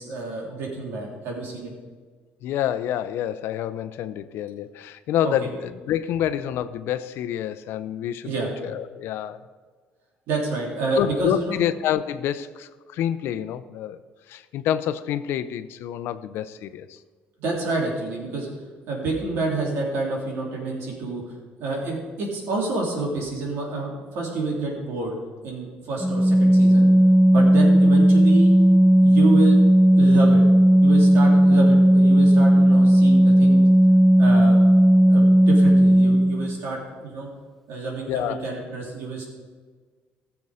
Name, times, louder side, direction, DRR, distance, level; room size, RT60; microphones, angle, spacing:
voice 1, 0.0-1.7 5.2-5.3 8.2-8.5 10.3-11.6 17.4-18.5 18.9-21.2 21.6-25.2 25.4-26.9 27.3-28.5 29.0-29.6 30.0-30.4 30.8-33.6 34.2-34.6 35.0-37.3 37.7-39.3, right 3 dB, 75° right, -2 dB, 3.4 m, -28 dB
voice 2, 2.4-8.3 8.6-9.4 10.9-14.0 14.3-17.0 38.1-38.5, left 11 dB, 75° left, 12 dB, 0.6 m, -27 dB
Organ, 26.0-36.6, right 1 dB, 5° left, 0.4 m, -15 dB
15.0 x 7.1 x 5.0 m, 1.5 s
cardioid pair, 90°, 4 cm